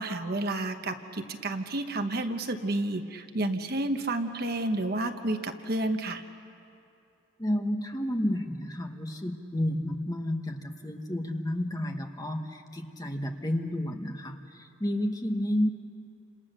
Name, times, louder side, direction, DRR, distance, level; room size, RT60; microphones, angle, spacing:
voice 1, 0.0-6.2, right 2 dB, 45° right, 6 dB, 1.1 m, -30 dB
voice 2, 7.4-15.7, left 1 dB, 15° left, 4 dB, 1.3 m, -31 dB
29.5 x 27.0 x 6.7 m, 2.6 s
head